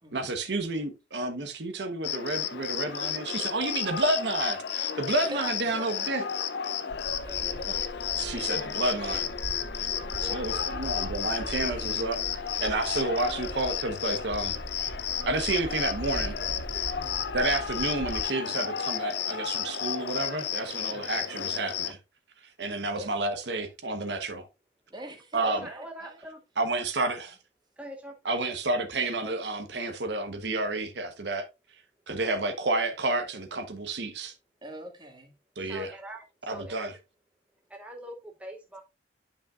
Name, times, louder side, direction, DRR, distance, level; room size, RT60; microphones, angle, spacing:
voice 1, 0.1-6.2 7.7-7.8 8.2-9.3 9.8-9.9 10.2-12.2 12.6-14.5 15.2-16.4 17.3-22.0 22.6-24.5 25.3-25.7 26.6-27.4 28.2-31.5 32.1-34.3 35.6-35.9 36.5-36.9, right 2 dB, 65° right, 1.0 m, -30 dB
Cricket, 2.0-21.9, left 8 dB, 60° left, 0.6 m, -32 dB
voice 2, 5.1-6.2 7.1-7.6 10.2-11.1 16.9-17.2 20.9-21.0 22.9-23.1 24.9-26.2 34.6-35.3, equal, 25° right, 1.7 m, -43 dB
Bird, 6.9-18.2, right 1 dB, 50° right, 0.7 m, -41 dB
voice 3, 25.4-26.4 27.8-28.1 35.6-36.9 37.7-38.8, right 1 dB, 5° right, 0.8 m, -42 dB
9.9 x 5.7 x 2.4 m
head